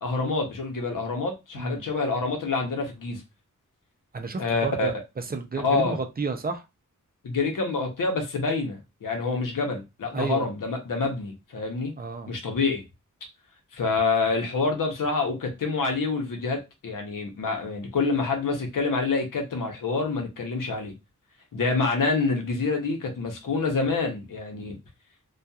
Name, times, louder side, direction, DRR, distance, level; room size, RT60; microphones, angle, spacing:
voice 1, 0.0-3.2 4.4-4.9 5.6-6.0 7.2-11.9 12.3-12.8 13.7-20.9 21.5-24.8, left 3 dB, 80° left, 3 dB, 0.8 m, -27 dB
voice 2, 4.1-4.9 5.3-6.6 10.1-10.5 12.0-12.3, right 4 dB, 30° right, 6 dB, 0.4 m, -31 dB
2.7 x 2.3 x 2.3 m, 0.24 s
wide cardioid pair, 100°, 32 cm